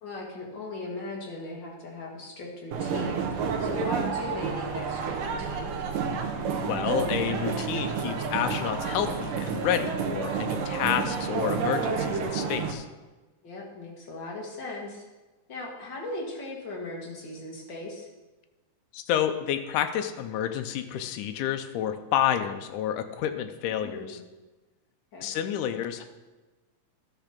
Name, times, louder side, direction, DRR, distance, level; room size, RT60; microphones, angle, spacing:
voice 1, 0.0-5.7 13.4-15.0 15.5-18.1 23.6-24.2 25.1-25.3, left 2 dB, 40° left, -2 dB, 2.1 m, -38 dB
sound 1, 2.7-12.7, right 5 dB, 80° right, 2.6 m, -30 dB
voice 2, 6.7-12.9 18.9-24.2 25.2-26.0, left 10 dB, 75° left, 8 dB, 2.1 m, -29 dB
12.5 x 6.1 x 5.8 m, 1.2 s
omnidirectional pair, 3.8 m